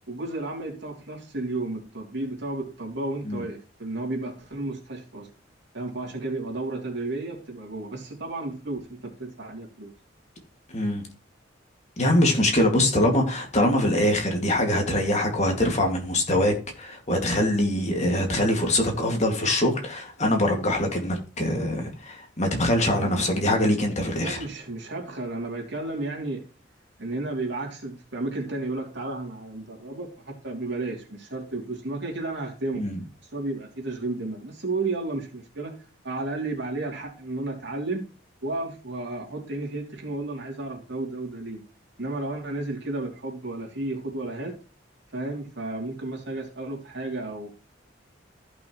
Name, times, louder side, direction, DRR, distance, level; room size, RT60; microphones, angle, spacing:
voice 1, 0.1-5.3 5.7-9.9 12.2-12.4 23.0-23.3 24.2-26.4 27.0-32.9 33.3-35.8 36.0-38.1 38.4-41.6 42.0-44.6 45.1-47.5, right 2 dB, 60° right, 3.0 m, -32 dB
voice 2, 10.7-11.1 12.0-24.4 32.7-33.0, left 1 dB, 35° left, 2.2 m, -23 dB
14.5 x 6.0 x 3.1 m
head